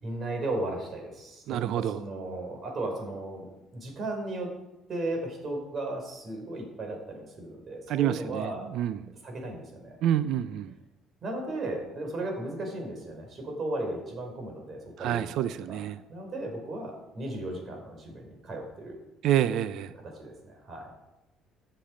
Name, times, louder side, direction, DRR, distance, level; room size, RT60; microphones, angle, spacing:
voice 1, 0.0-1.6 1.9-4.5 4.9-8.7 9.2-10.0 11.2-15.8 16.1-19.0 20.0-20.9, right 2 dB, 45° right, 2 dB, 4.8 m, -35 dB
voice 2, 1.5-2.0 7.9-9.0 10.0-10.7 15.0-16.0 19.2-19.9, right 11 dB, 70° right, 13 dB, 0.6 m, -28 dB
15.0 x 7.7 x 5.1 m, 0.95 s
cardioid pair, 95°, 0 cm